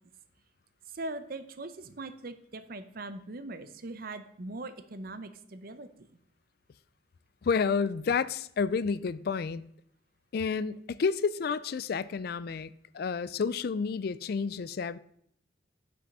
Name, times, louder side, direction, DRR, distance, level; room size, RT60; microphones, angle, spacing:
voice 1, 0.9-6.2, right 2 dB, 55° right, 0.7 m, -41 dB
voice 2, 7.4-9.7 10.3-15.0, left 5 dB, 55° left, 0.4 m, -30 dB
8.4 x 6.2 x 5.4 m
head